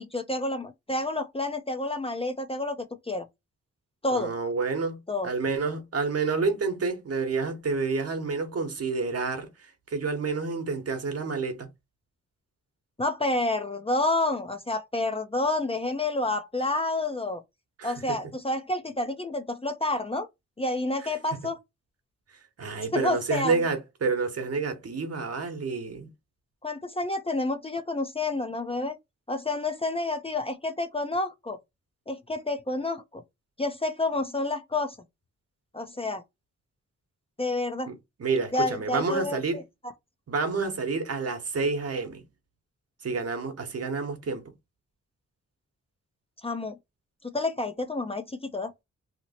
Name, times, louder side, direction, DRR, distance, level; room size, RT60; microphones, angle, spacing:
voice 1, 0.0-2.8 3.1-3.2 4.0-4.3 5.1-5.3 13.0-17.4 17.8-20.3 20.6-21.6 22.9-23.6 26.6-29.0 29.3-31.6 32.1-33.2 33.6-35.0 35.7-36.2 37.4-37.9 38.5-39.6 46.4-46.7 47.2-48.7, left 2 dB, 20° left, 0.5 m, -29 dB
voice 2, 4.1-11.7 17.8-18.2 22.6-26.1 37.9-39.6 40.3-42.2 43.0-44.4, right 4 dB, 55° right, 1.0 m, -29 dB
2.9 x 2.0 x 4.1 m
cardioid pair, 70°, 29 cm